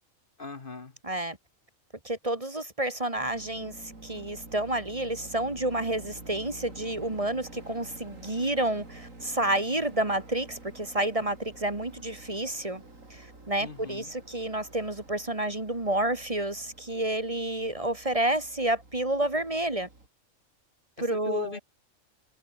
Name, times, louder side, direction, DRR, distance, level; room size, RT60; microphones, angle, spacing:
voice 1, 0.4-1.0 13.6-14.1 21.0-21.6, left 4 dB, 40° left, 1.5 m, -38 dB
voice 2, 1.0-1.4 2.0-12.8 13.1-19.9 21.0-21.5, right 1 dB, 25° right, 1.9 m, -30 dB
sound 1, 3.1-20.1, right 2 dB, 75° right, 5.2 m, -49 dB
omnidirectional pair, 1.4 m